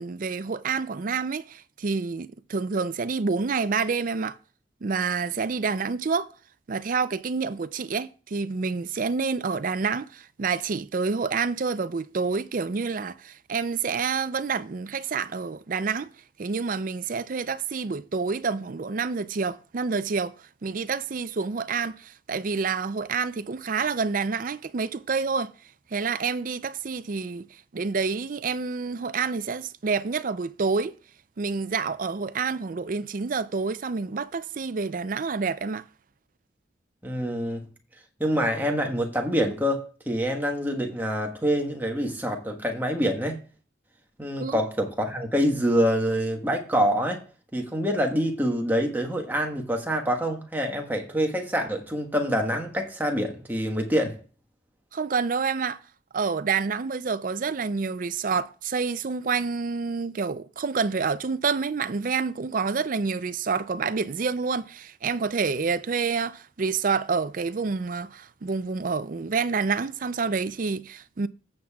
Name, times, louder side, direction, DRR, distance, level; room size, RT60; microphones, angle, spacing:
voice 1, 0.0-4.4 4.8-6.3 6.7-16.1 16.4-20.3 20.6-25.5 25.9-27.5 27.7-30.9 31.4-35.8 44.4-44.6 54.9-55.8 56.1-71.3, right 5 dB, 50° right, 0.5 m, -28 dB
voice 2, 37.0-37.6 38.2-43.4 44.2-47.2 47.5-54.1, equal, 10° right, 1.3 m, -26 dB
15.0 x 7.4 x 2.3 m
head